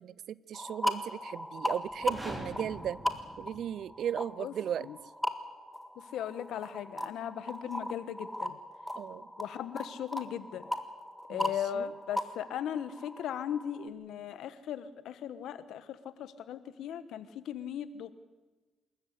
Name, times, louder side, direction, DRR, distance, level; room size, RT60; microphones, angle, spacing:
voice 1, 0.0-3.0 3.4-4.9 8.9-9.3 11.3-11.8, right 9 dB, 65° right, 21 dB, 0.6 m, -36 dB
sound 1, 0.5-13.9, left 1 dB, 5° left, 1.8 m, -38 dB
sound 2, 1.9-4.0, equal, 10° right, 4.4 m, -44 dB
voice 2, 5.9-8.6 9.4-10.7 11.3-18.1, left 9 dB, 80° left, 13 dB, 1.4 m, -38 dB
26.5 x 14.0 x 8.5 m, 1.2 s
cardioid pair, 90°, 0 cm